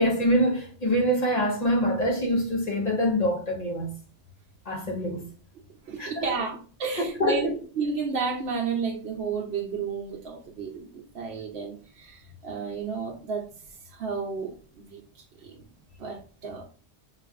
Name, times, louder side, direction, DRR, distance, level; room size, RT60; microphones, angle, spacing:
voice 1, 0.0-3.9 4.7-5.2 6.0-6.3 6.9-7.5, equal, 40° left, 1.2 m, -25 dB
voice 2, 5.9-7.5 7.8-13.5 13.9-15.6 16.0-16.6, right 5 dB, 75° right, 0.9 m, -32 dB
5.8 x 3.2 x 2.4 m
omnidirectional pair, 1.1 m